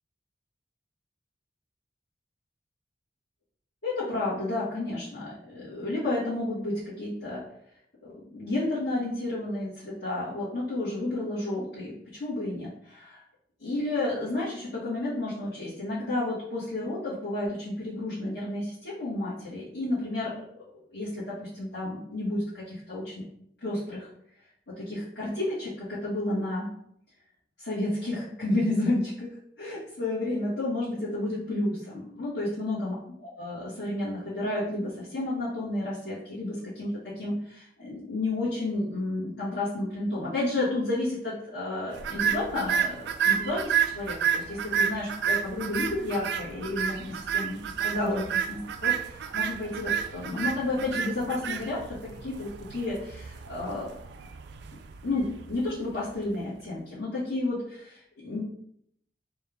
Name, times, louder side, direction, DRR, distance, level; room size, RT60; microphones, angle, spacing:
voice 1, 3.8-7.4 8.3-13.2 13.6-20.3 20.9-23.2 23.6-24.1 24.8-26.7 27.6-29.3 29.6-32.9 33.4-51.8 52.2-54.0 55.0-58.4, left 2 dB, 65° left, -11 dB, 1.5 m, -31 dB
sound 1, 42.0-56.3, right 8 dB, 65° right, 0.3 m, -30 dB
4.2 x 2.4 x 3.4 m, 0.71 s
head